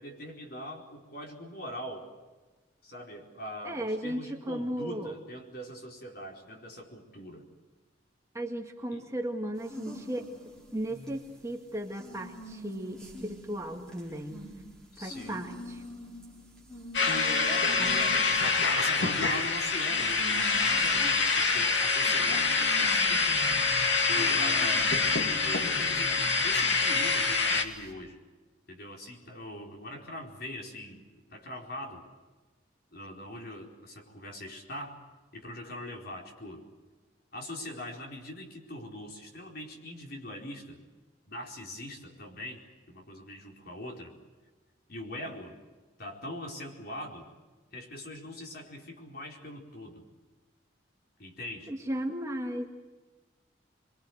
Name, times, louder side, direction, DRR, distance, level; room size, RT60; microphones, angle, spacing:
voice 1, 0.0-2.1 2.8-7.4 8.9-9.1 14.9-15.4 17.0-23.4 24.1-24.9 25.2-28.2 28.7-32.0 32.9-35.0 35.3-36.7 37.3-40.8 41.3-44.2 44.9-45.6 46.0-47.3 47.7-50.1 51.2-51.7, left 1 dB, 55° left, 1 dB, 4.5 m, -41 dB
voice 2, 3.6-5.1 8.3-10.3 10.7-14.5 15.0-15.5 17.8-17.9 51.7-52.7, right 1 dB, 15° right, 2 dB, 2.0 m, -35 dB
sound 1, 9.6-27.9, equal, 5° left, 4.5 m, -46 dB
sound 2, 16.9-27.6, left 4 dB, 70° left, 2.3 m, -26 dB
24.0 x 24.0 x 8.0 m, 1.3 s
head